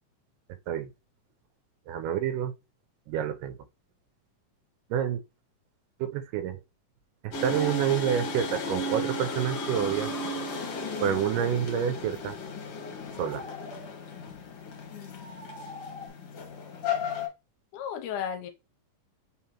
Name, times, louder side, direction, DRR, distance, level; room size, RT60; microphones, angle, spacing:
voice 1, 1.9-2.5 3.1-3.6 4.9-5.2 6.0-6.6 7.2-10.1 11.0-12.4 13.2-13.4, right 9 dB, 90° right, 2.2 m, -28 dB
sound 1, 7.3-17.3, left 2 dB, 60° left, 1.7 m, -35 dB
sound 2, 7.6-7.8 8.6-10.9 12.8-14.0 14.9-16.1, left 1 dB, 40° left, 0.5 m, -45 dB
voice 2, 14.9-15.4 17.7-18.5, left 8 dB, 85° left, 2.1 m, -35 dB
4.9 x 3.8 x 2.9 m
omnidirectional pair, 3.7 m